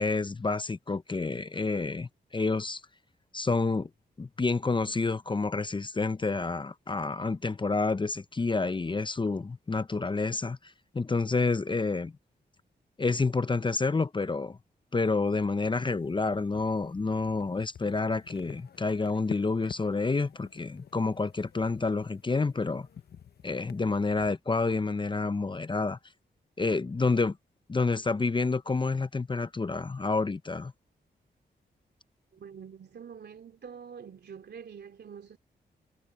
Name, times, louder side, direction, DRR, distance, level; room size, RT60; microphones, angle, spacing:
voice 1, 0.0-2.8 3.3-3.9 4.2-10.6 10.9-12.1 13.0-14.6 14.9-22.9 23.4-26.0 26.6-27.4 27.7-30.7, left 3 dB, 25° left, 0.7 m, -29 dB
sound 1, 15.9-24.3, left 8 dB, 65° left, 1.0 m, -49 dB
voice 2, 32.3-35.4, right 7 dB, 65° right, 3.1 m, -46 dB
cardioid pair, 65°, 18 cm